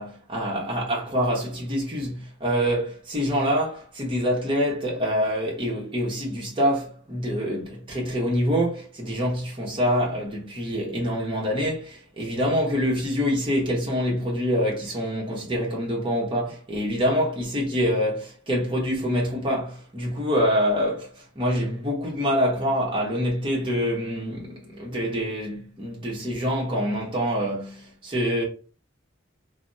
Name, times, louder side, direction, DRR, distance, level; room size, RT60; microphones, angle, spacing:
voice 1, 0.0-28.5, equal, 25° right, 0.8 m, -26 dB
3.2 x 2.0 x 2.6 m
head